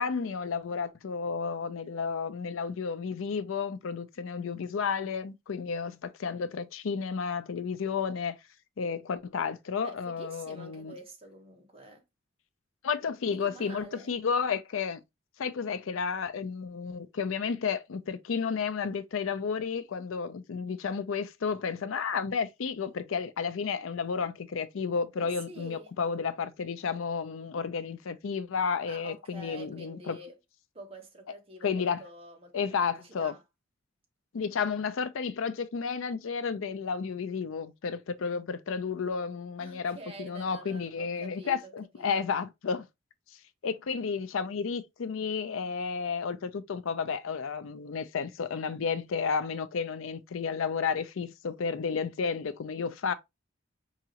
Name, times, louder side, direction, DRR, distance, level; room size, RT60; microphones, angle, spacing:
voice 1, 0.0-8.4 8.8-10.9 12.8-15.0 15.4-30.2 31.6-32.0 32.5-33.3 34.3-42.8 43.6-53.1, left 5 dB, 75° left, 0.5 m, -32 dB
voice 2, 9.8-12.0 13.3-14.2 25.2-26.0 28.9-30.4 30.7-33.4 39.6-42.2, right 2 dB, 30° right, 1.1 m, -48 dB
4.7 x 3.0 x 2.8 m
head